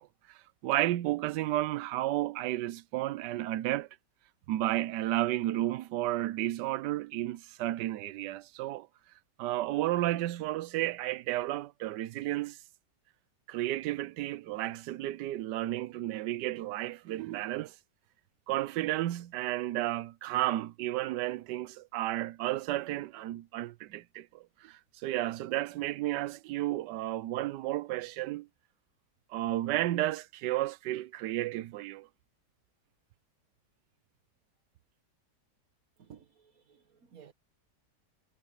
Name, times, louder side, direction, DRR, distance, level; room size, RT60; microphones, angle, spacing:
voice 1, 0.0-3.9 4.5-8.9 9.4-12.6 13.5-17.7 18.5-28.5 29.3-32.1, right 15 dB, 75° right, 1.3 m, -32 dB
voice 2, 36.0-37.3, right 8 dB, 55° right, 1.6 m, -55 dB
omnidirectional pair, 1.9 m